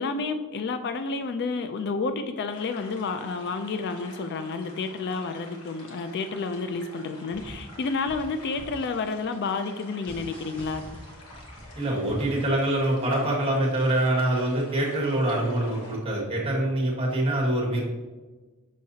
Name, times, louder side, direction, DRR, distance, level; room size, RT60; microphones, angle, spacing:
voice 1, 0.0-10.8, left 4 dB, 50° left, 9 dB, 0.3 m, -30 dB
sound 1, 2.5-16.0, left 1 dB, 85° left, 1.3 m, -48 dB
sound 2, 7.3-12.5, equal, 5° left, 1.2 m, -45 dB
voice 2, 11.7-17.8, right 1 dB, 25° right, -4 dB, 1.6 m, -25 dB
6.4 x 5.5 x 2.8 m, 1.3 s
head